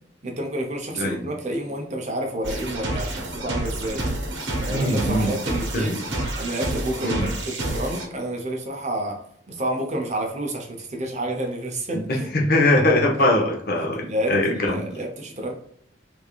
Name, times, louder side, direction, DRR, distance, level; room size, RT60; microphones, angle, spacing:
voice 1, 0.2-4.1 4.6-6.1 6.3-9.2 9.5-12.4 13.8-15.5, right 1 dB, 40° right, 1 dB, 0.7 m, -29 dB
voice 2, 0.9-1.3 4.7-5.3 5.7-6.0 7.0-7.3 11.9-14.8, left 1 dB, 50° left, 0 dB, 0.8 m, -22 dB
sound 1, 2.4-8.1, right 1 dB, 80° right, 1.0 m, -29 dB
3.5 x 3.3 x 2.3 m, 0.69 s
head